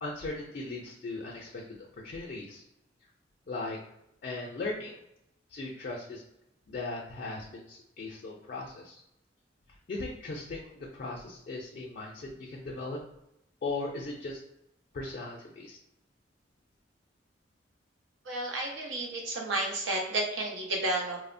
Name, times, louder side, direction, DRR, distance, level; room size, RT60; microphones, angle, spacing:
voice 1, 0.0-1.6 2.0-2.6 3.5-3.8 4.2-5.0 5.5-6.2 6.7-9.0 9.9-13.0 13.6-14.4 14.9-15.8, left 2 dB, 50° left, -2 dB, 0.4 m, -38 dB
voice 2, 18.2-21.2, right 2 dB, 90° right, 0 dB, 0.7 m, -31 dB
2.9 x 2.0 x 2.5 m, 0.81 s
head